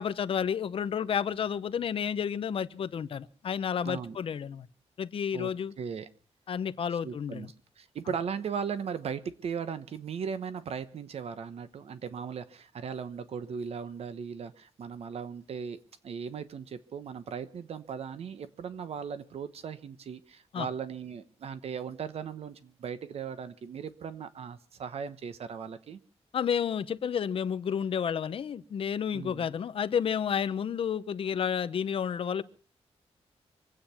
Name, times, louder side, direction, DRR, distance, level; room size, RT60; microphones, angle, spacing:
voice 1, 0.0-4.7 5.0-5.7 6.5-7.5 20.5-20.7 26.3-32.4, left 7 dB, 55° left, 13 dB, 0.8 m, -31 dB
voice 2, 3.8-4.2 5.3-6.1 6.9-7.5 7.8-15.8 16.0-26.0 29.1-29.5, right 6 dB, 65° right, 12 dB, 1.0 m, -38 dB
25.0 x 8.9 x 5.8 m, 0.43 s
wide cardioid pair, 170°, 11 cm